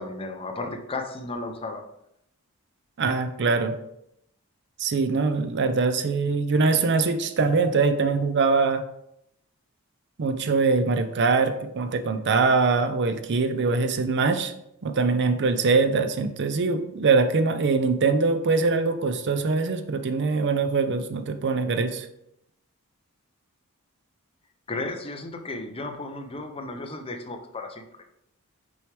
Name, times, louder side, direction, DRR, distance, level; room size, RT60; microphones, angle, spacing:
voice 1, 0.0-1.9 24.7-27.8, left 2 dB, 25° left, 5 dB, 0.6 m, -34 dB
voice 2, 3.0-3.7 4.8-8.8 10.2-14.5 14.8-22.1, right 4 dB, 50° right, 9 dB, 0.5 m, -23 dB
6.1 x 4.7 x 3.3 m, 0.77 s
head